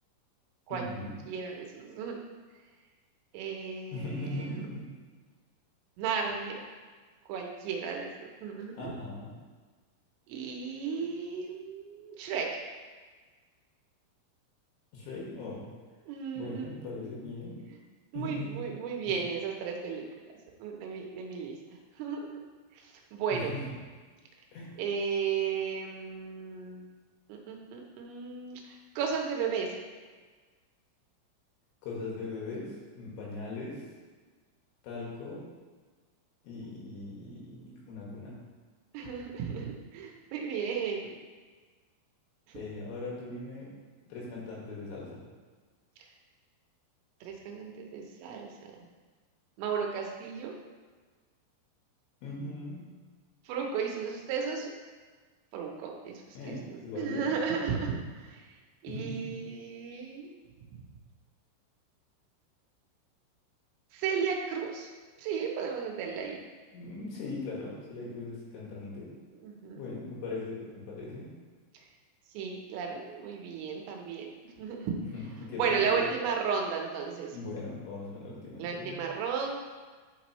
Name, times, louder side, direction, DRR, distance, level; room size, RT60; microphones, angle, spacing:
voice 1, 0.7-1.2 3.9-4.9 8.7-9.3 14.9-15.7 16.4-17.6 18.1-18.7 19.0-19.2 23.3-23.6 24.5-24.7 31.8-33.8 34.8-35.4 36.4-38.4 42.5-43.7 44.1-45.2 52.2-52.8 56.3-57.3 58.9-59.4 66.7-69.1 69.8-71.3 75.1-76.1 77.3-79.0, left 2 dB, 70° left, -5 dB, 3.9 m, -39 dB
voice 2, 1.3-2.2 3.3-4.7 6.0-6.6 7.3-8.9 10.3-12.5 16.1-16.7 18.1-20.0 20.6-21.6 22.0-22.4 22.7-23.5 24.8-26.8 27.3-29.7 38.9-41.2 47.2-48.5 49.6-50.5 53.5-54.7 55.5-56.6 57.0-58.5 58.8-60.3 63.9-64.9 65.2-66.5 69.4-69.8 72.3-74.9 75.6-77.3 78.6-79.6, right 6 dB, 85° right, 1 dB, 3.5 m, -34 dB
11.0 x 6.1 x 3.1 m, 1.4 s
omnidirectional pair, 5.9 m